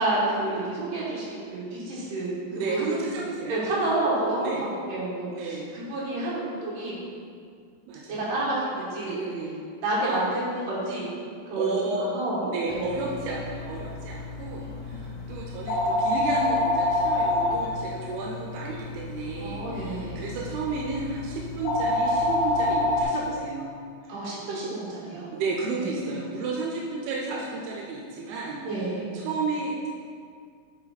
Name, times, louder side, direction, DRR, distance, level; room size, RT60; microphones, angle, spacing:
voice 1, 0.0-2.8 3.5-7.0 8.1-9.2 9.8-11.2 11.5-11.7 12.0-12.4 12.7-12.9 14.6-15.2 19.4-20.2 24.1-25.3 25.7-25.9 28.6-29.1, right 2 dB, 65° right, -7 dB, 3.1 m, -29 dB
voice 2, 2.5-3.7 4.4-4.7 5.3-5.8 7.9-8.2 9.0-9.6 10.1-10.2 11.5-12.1 12.4-24.1 25.3-28.9 29.1-29.9, right 3 dB, 85° right, -2 dB, 2.7 m, -32 dB
sound 1, 12.7-23.0, left 1 dB, 80° left, 1.8 m, -28 dB
6.8 x 4.7 x 4.1 m, 2.2 s
omnidirectional pair, 4.5 m